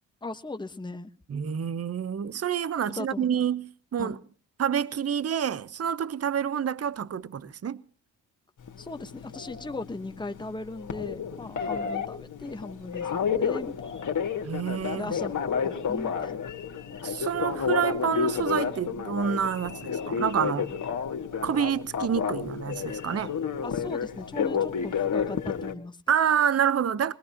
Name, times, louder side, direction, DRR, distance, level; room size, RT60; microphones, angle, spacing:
voice 1, 0.2-1.1 3.0-3.4 4.0-4.2 8.8-13.7 14.9-15.3 15.6-16.4 23.6-26.0, left 2 dB, 10° left, 1.3 m, -38 dB
voice 2, 1.3-4.2 4.6-7.8 14.4-15.2 17.0-20.7 21.4-23.3 26.1-27.1, right 8 dB, 35° right, 1.0 m, -28 dB
Telephone, 8.6-25.7, left 7 dB, 50° left, 2.5 m, -31 dB
21.0 x 20.5 x 3.0 m
hypercardioid pair, 55°, 40 cm